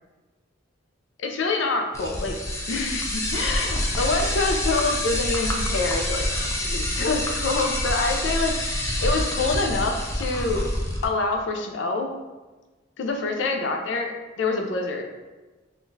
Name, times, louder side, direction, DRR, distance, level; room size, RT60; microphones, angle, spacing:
voice 1, 1.2-2.3 2.7-6.3 6.6-8.5 9.0-10.7 11.0-12.1 13.0-15.1, left 3 dB, 80° left, 3 dB, 0.4 m, -26 dB
sound 1, 1.9-11.0, left 1 dB, 15° left, 0.4 m, -27 dB
3.6 x 2.3 x 2.6 m, 1.2 s
head